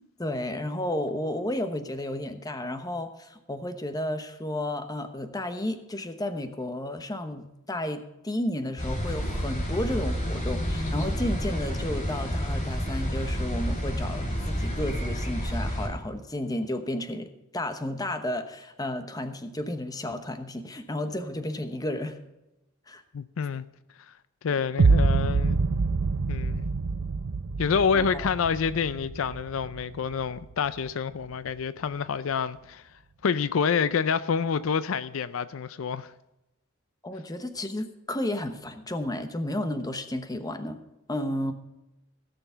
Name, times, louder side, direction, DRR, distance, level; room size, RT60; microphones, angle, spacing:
voice 1, 0.2-17.3 17.5-22.2 22.9-23.0 27.9-28.3 37.0-40.8 41.1-41.5, left 1 dB, 20° left, 0.9 m, -32 dB
sound 1, 8.8-15.9, equal, 35° left, 2.8 m, -29 dB
voice 2, 23.1-23.7 24.4-25.6 26.3-26.6 27.6-32.8 33.2-36.1, left 6 dB, 70° left, 0.4 m, -27 dB
sound 2, 24.8-30.8, right 4 dB, 80° right, 0.5 m, -26 dB
16.5 x 6.9 x 5.6 m
head